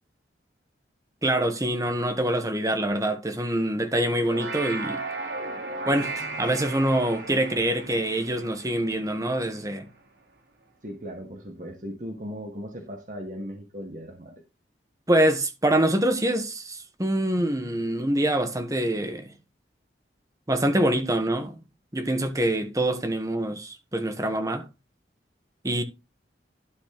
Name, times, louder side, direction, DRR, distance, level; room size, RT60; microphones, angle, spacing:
voice 1, 1.2-5.0 5.9-9.9 15.1-19.3 20.5-21.6 21.9-24.7 25.6-25.8, right 1 dB, 20° right, 1.3 m, -25 dB
sound 1, 4.1-9.6, right 3 dB, 80° right, 3.4 m, -35 dB
voice 2, 10.8-14.3, equal, 45° right, 1.7 m, -37 dB
12.0 x 4.1 x 6.0 m
head